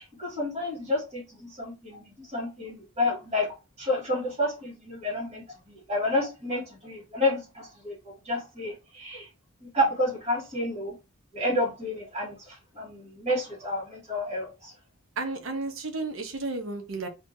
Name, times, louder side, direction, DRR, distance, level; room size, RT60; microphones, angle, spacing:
voice 1, 0.0-9.3 9.6-10.9 11.3-14.7, left 1 dB, 30° right, 1.9 m, -30 dB
voice 2, 15.2-17.1, right 3 dB, 65° right, 0.7 m, -32 dB
3.6 x 2.8 x 2.6 m
head